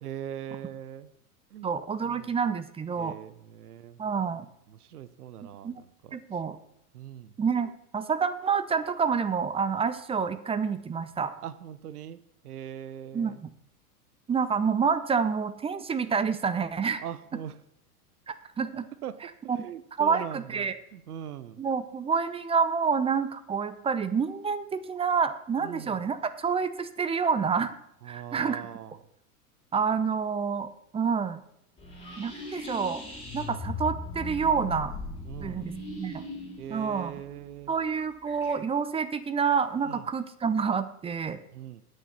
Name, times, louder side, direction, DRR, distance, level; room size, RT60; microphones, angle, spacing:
voice 1, 0.0-1.1 1.5-1.7 2.0-2.3 2.9-4.0 4.7-6.2 6.9-7.3 11.4-13.4 17.0-17.6 19.0-21.6 25.6-26.0 28.0-29.0 35.2-35.7 36.6-37.8 39.8-40.0 41.5-41.8, right 10 dB, 75° right, 15 dB, 0.8 m, -41 dB
voice 2, 1.6-3.1 4.0-4.5 5.6-5.8 6.1-6.6 7.4-11.3 13.1-13.5 14.3-17.0 18.3-18.9 19.5-19.6 20.0-20.7 21.6-27.8 28.1-28.7 29.7-31.4 32.2-33.0 33.3-35.0 35.4-36.2 36.7-37.1 37.7-41.4, right 6 dB, 15° right, 13 dB, 0.6 m, -28 dB
sound 1, 31.8-38.5, left 2 dB, 15° left, 5.3 m, -38 dB
19.5 x 6.6 x 4.3 m, 0.74 s
figure-of-eight pair, 95°, 46 cm